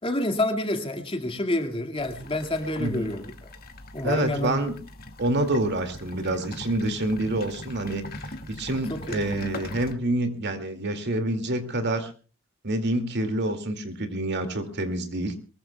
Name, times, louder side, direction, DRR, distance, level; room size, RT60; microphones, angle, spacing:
voice 1, 0.0-3.3 3.9-4.6 8.7-9.2, left 1 dB, 25° left, 4 dB, 2.1 m, -28 dB
sound 1, 2.0-9.9, left 2 dB, 45° left, 2.0 m, -41 dB
voice 2, 2.8-3.1 4.0-4.8 5.2-12.1 12.6-15.3, right 1 dB, 55° right, 7 dB, 2.4 m, -27 dB
22.5 x 21.0 x 2.3 m, 0.35 s
head